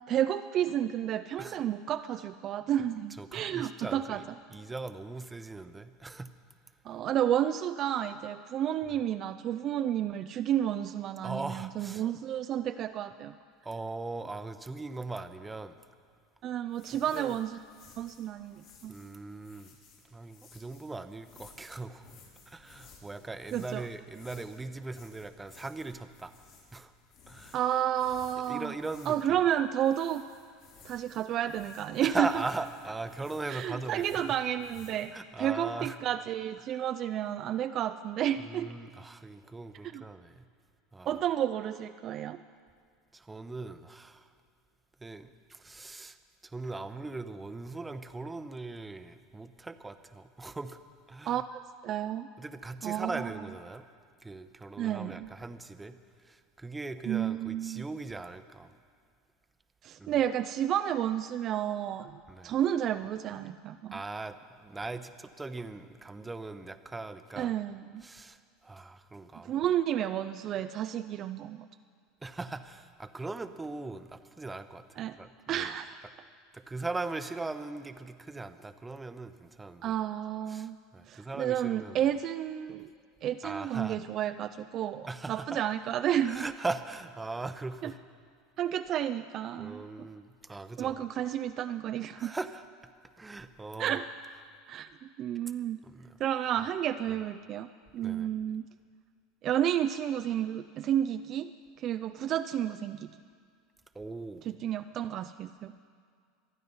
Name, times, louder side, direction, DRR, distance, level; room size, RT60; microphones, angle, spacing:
voice 1, 0.1-4.2 6.8-13.3 16.4-17.6 18.0-18.9 23.5-23.8 27.5-28.7 29.1-30.2 30.8-32.3 33.5-35.1 35.4-38.7 39.9-40.0 41.1-42.4 51.3-52.3 52.8-53.2 54.8-55.3 57.1-57.8 59.8-63.9 67.4-68.0 69.4-71.7 75.0-75.2 75.5-76.0 79.8-80.8 81.1-82.9 83.2-86.4 87.8-87.9 88.6-89.8 90.8-92.3 93.8-94.1 94.7-95.8 96.2-97.7 97.9-98.7 99.4-101.5 101.8-103.1 104.6-105.7, right 10 dB, 45° right, 10 dB, 0.4 m, -31 dB
voice 2, 3.2-4.2 4.5-6.3 8.9-9.0 11.2-12.0 13.6-15.8 17.1-17.4 18.8-19.8 20.1-22.2 22.5-26.3 26.7-26.9 27.3-27.6 28.5-29.4 32.0-34.3 35.1-36.0 36.6-36.9 38.4-40.4 40.9-41.2 43.1-44.3 45.0-46.2 46.4-50.8 51.1-51.4 52.4-53.8 54.2-55.9 56.2-58.7 60.0-60.2 62.3-62.5 63.9-67.5 68.0-69.5 72.2-75.7 76.5-79.9 80.5-82.0 83.4-84.0 85.1-85.6 86.2-88.0 89.6-90.9 92.2-92.6 93.2-94.0 95.8-96.2 97.1-97.2 98.0-98.3 103.9-104.5, right 3 dB, 15° right, 10 dB, 0.9 m, -39 dB
sound 1, 16.7-35.1, left 5 dB, 65° left, 4.7 m, -58 dB
25.0 x 9.4 x 5.6 m, 2.2 s
supercardioid pair, 105°, 0 cm